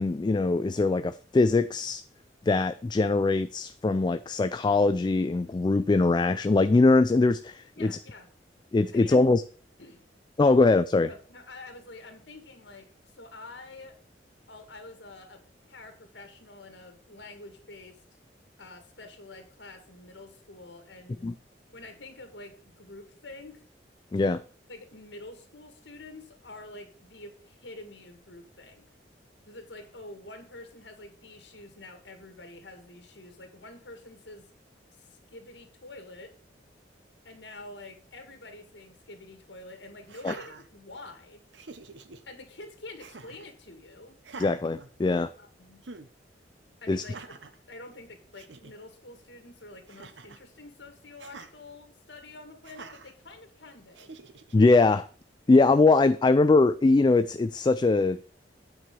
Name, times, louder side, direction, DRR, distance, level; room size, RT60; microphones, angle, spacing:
voice 1, 0.0-2.0 2.5-8.0 8.7-9.4 10.4-11.1 21.2-21.3 24.1-24.4 40.2-40.3 44.4-45.3 46.9-47.0 54.5-55.1 55.5-58.2, left 3 dB, 25° left, 12 dB, 0.3 m, -22 dB
voice 2, 7.8-8.3 8.9-9.3 9.8-10.0 10.6-10.7 11.1-14.0 14.5-15.4 15.7-18.0 18.6-21.3 21.7-23.6 24.7-28.9 29.5-34.5 34.9-36.3 37.2-41.4 42.3-44.2 45.4-45.8 46.8-47.3 47.7-54.1, left 2 dB, 75° left, 6 dB, 2.2 m, -47 dB
Laughter, 40.0-41.2 41.5-42.2 43.0-43.5 44.2-45.4 45.8-46.1 47.0-47.6 48.1-48.2 48.3-48.7 49.9-50.5 51.2-51.5 52.6-53.1 53.9-54.5, right 4 dB, 80° right, 0.9 m, -46 dB
8.9 x 4.7 x 6.9 m, 0.41 s
head